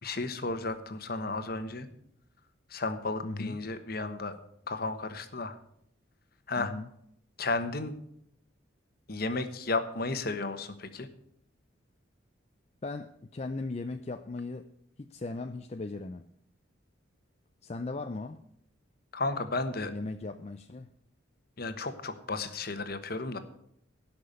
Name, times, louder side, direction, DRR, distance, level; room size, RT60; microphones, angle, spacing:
voice 1, 0.0-1.9 2.7-4.3 4.7-5.6 6.5-6.7 7.4-7.9 9.1-11.1 19.1-19.9 21.6-23.4, left 3 dB, 50° left, 1.1 m, -33 dB
voice 2, 3.2-3.6 6.6-6.9 12.8-14.7 15.0-16.3 17.6-18.4 19.9-20.9, left 3 dB, 35° left, 0.5 m, -38 dB
17.0 x 6.0 x 6.8 m
head